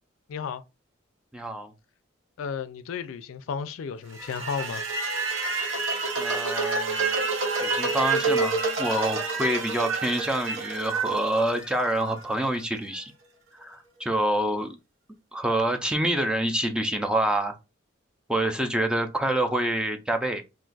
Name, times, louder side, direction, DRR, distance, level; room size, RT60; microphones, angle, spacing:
voice 1, 0.3-0.6 2.4-4.8, left 6 dB, 85° left, 0.4 m, -33 dB
voice 2, 1.3-1.7 6.2-7.3 7.6-13.1 13.6-14.8 15.3-17.6 18.3-20.4, right 1 dB, 5° right, 0.4 m, -27 dB
sound 1, 4.1-12.2, right 4 dB, 70° right, 0.8 m, -28 dB
2.5 x 2.3 x 3.8 m
head